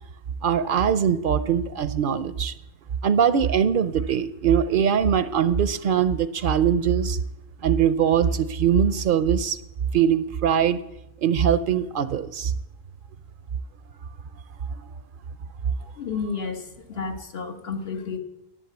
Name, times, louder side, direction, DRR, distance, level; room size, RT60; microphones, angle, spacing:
voice 1, 0.4-2.5 3.0-7.2 7.6-9.6 9.9-10.8 11.2-12.5, right 8 dB, 65° right, 14 dB, 0.7 m, -22 dB
voice 2, 16.0-18.2, left 5 dB, 75° left, 5 dB, 1.5 m, -31 dB
11.0 x 7.4 x 7.9 m, 0.87 s
omnidirectional pair, 1.0 m